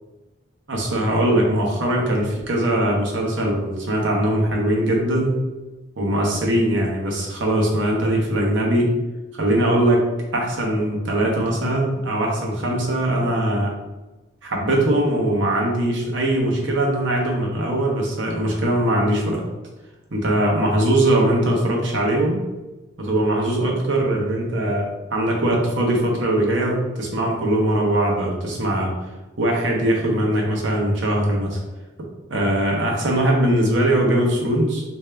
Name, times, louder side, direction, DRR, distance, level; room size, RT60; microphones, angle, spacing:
voice 1, 0.7-5.4 6.0-8.9 9.3-10.0 10.3-13.7 14.4-19.4 20.1-22.4 23.0-28.9 29.4-31.6 32.3-34.8, right 1 dB, 75° right, -1 dB, 0.9 m, -21 dB
3.3 x 2.7 x 3.4 m, 1.1 s
head